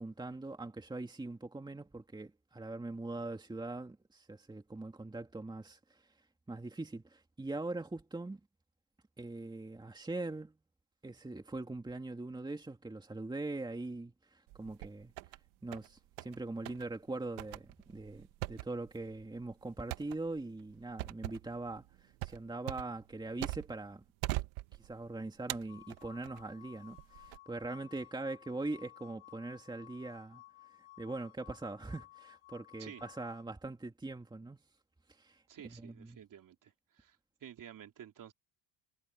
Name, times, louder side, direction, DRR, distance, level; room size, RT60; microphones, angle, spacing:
voice 1, 0.0-6.0 6.5-8.4 9.2-10.5 11.0-15.1 15.6-24.0 24.8-30.4 31.0-34.6 35.1-36.2, right 2 dB, 10° right, 2.4 m, -42 dB
sound 1, 14.5-15.4 15.7-16.4 16.7-16.9 17.4-23.9 24.2-25.1 25.5-26.4 27.0-27.4, right 19 dB, 80° right, 1.8 m, -42 dB
sound 2, 25.7-33.4, left 19 dB, 75° left, 5.7 m, -57 dB
voice 2, 35.5-38.3, right 9 dB, 40° right, 3.1 m, -52 dB
cardioid pair, 125°, 48 cm